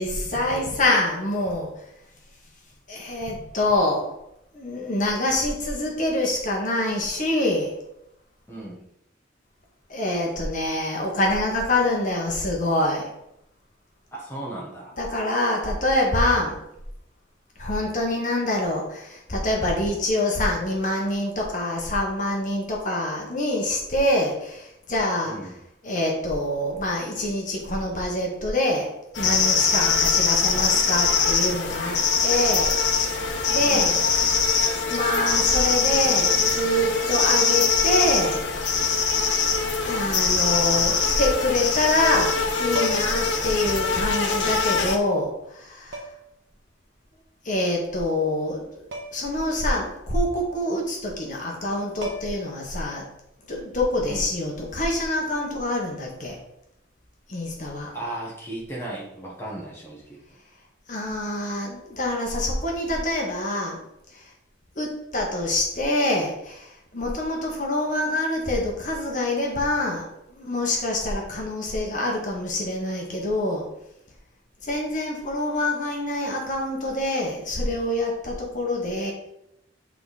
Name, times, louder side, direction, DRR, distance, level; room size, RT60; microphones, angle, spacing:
voice 1, 0.0-1.7 2.9-4.1 4.5-7.8 9.9-13.1 15.0-16.5 17.6-25.5 25.8-32.0 32.2-33.2 33.5-34.1 34.9-39.0 39.8-46.1 47.4-48.7 49.1-53.1 53.5-56.4 57.3-57.9 60.9-63.8 64.1-64.2 64.8-73.6 74.6-79.1, left 1 dB, 45° left, -1 dB, 1.4 m, -26 dB
voice 2, 8.5-8.8 14.1-14.9 25.2-25.5 33.6-33.9 54.0-54.2 57.9-60.2, right 1 dB, 15° left, -4 dB, 1.4 m, -35 dB
sound 1, 29.1-45.0, left 5 dB, 80° left, 1.0 m, -22 dB
sound 2, 42.7-43.3 44.6-44.7 45.9-46.4 48.9-49.3 49.7-49.8 51.6-51.7 52.0-52.6 54.6-54.8, equal, 75° right, 1.1 m, -35 dB
8.9 x 3.7 x 4.2 m, 0.82 s
head